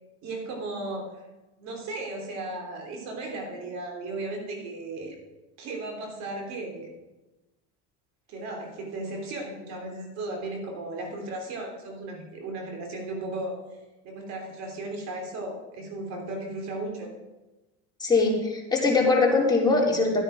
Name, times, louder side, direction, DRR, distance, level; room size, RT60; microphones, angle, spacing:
voice 1, 0.2-1.1 1.6-5.2 5.6-6.9 8.3-13.6 14.0-17.1, right 2 dB, 60° right, 1 dB, 3.3 m, -35 dB
voice 2, 18.0-20.2, left 3 dB, 15° left, -3 dB, 3.5 m, -22 dB
13.5 x 9.0 x 5.0 m, 1.1 s
supercardioid pair, 105°, 31 cm